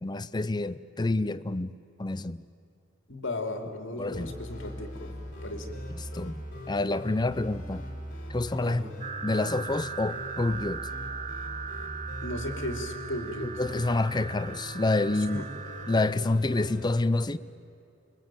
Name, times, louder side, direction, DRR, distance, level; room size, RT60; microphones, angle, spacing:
voice 1, 0.0-1.7 2.0-2.4 4.0-4.3 6.1-6.4 6.7-7.8 8.3-8.8 9.2-10.9 13.4-15.4 15.9-17.4, left 2 dB, 20° left, 0.6 m, -28 dB
voice 2, 3.1-5.1 5.4-5.8 8.6-8.9 12.2-13.5 15.1-15.5, left 1 dB, 60° left, 2.9 m, -36 dB
sound 1, 4.1-16.8, equal, 40° left, 5.3 m, -41 dB
sound 2, 9.0-16.1, right 6 dB, 35° right, 0.8 m, -39 dB
28.0 x 23.0 x 9.0 m
head